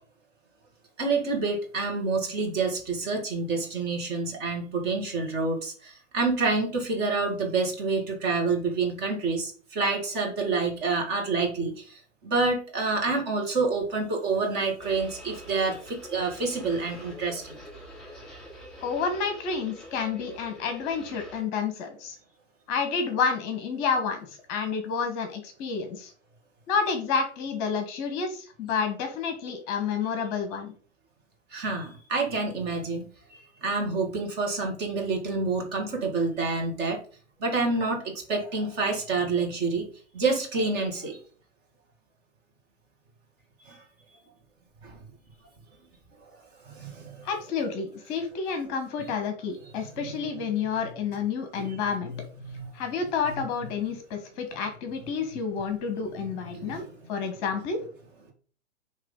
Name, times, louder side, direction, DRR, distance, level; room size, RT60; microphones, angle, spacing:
voice 1, 1.0-17.6 31.5-37.0 37.4-39.9 40.1-41.2 43.6-43.8 44.8-45.0 46.7-47.3 51.5-52.7 53.3-53.4 56.4-57.3, right 3 dB, 25° right, 1 dB, 1.9 m, -28 dB
sound 1, 14.8-21.4, left 1 dB, ahead, 0.3 m, -45 dB
voice 2, 18.8-22.2 22.7-26.1 26.7-30.7 47.2-52.1 52.7-56.8 57.1-57.8, left 5 dB, 30° left, 6 dB, 1.3 m, -29 dB
9.7 x 3.2 x 3.8 m, 0.42 s
figure-of-eight pair, 120°, 36 cm